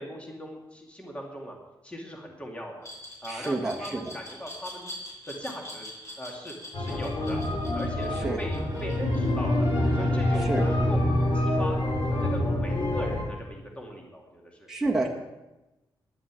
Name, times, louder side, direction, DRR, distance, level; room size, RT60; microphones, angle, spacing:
voice 1, 0.0-1.5 1.8-2.9 3.2-4.9 5.4-5.9 6.2-7.4 7.7-11.0 11.3-11.8 12.1-14.7, equal, 15° left, 0 dB, 2.4 m, -39 dB
Glass, 2.8-9.7, left 1 dB, 35° left, 5.9 m, -43 dB
voice 2, 3.3-4.0 8.2-8.4 10.5-10.6 14.7-15.1, right 2 dB, 5° right, -3 dB, 1.7 m, -28 dB
sound 1, 6.7-13.2, left 2 dB, 70° left, 4.3 m, -28 dB
Bowed string instrument, 8.7-13.4, equal, 55° right, 1.2 m, -29 dB
10.5 x 9.8 x 8.3 m, 1.0 s
wide cardioid pair, 135°, 8 cm